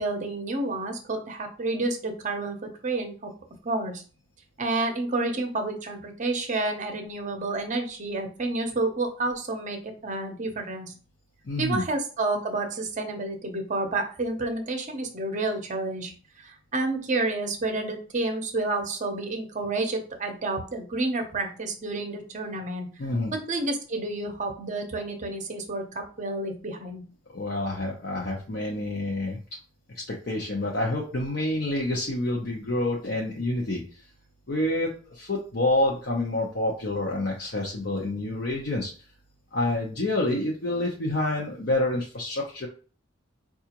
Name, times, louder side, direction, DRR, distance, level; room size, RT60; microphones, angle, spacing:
voice 1, 0.0-3.3 3.6-4.0 4.6-10.9 11.6-16.1 16.4-22.9 23.5-27.0, right 2 dB, 40° right, 5 dB, 0.7 m, -30 dB
voice 2, 11.4-11.8 23.0-23.3 27.3-29.4 30.3-33.8 34.5-38.9 39.5-42.7, left 1 dB, 55° left, -3 dB, 0.6 m, -28 dB
4.8 x 2.4 x 2.9 m, 0.38 s
head